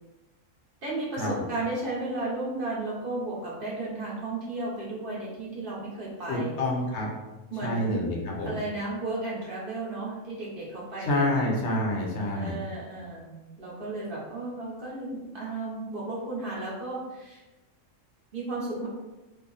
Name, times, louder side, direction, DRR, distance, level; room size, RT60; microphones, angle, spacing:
voice 1, 0.8-6.5 7.5-8.0 8.4-11.5 12.3-17.4 18.3-18.9, right 2 dB, 50° right, -6 dB, 1.0 m, -34 dB
voice 2, 6.3-7.1 7.6-8.6 11.0-12.6, left 1 dB, 65° left, -1 dB, 0.9 m, -28 dB
3.3 x 2.1 x 3.8 m, 1.1 s
omnidirectional pair, 1.3 m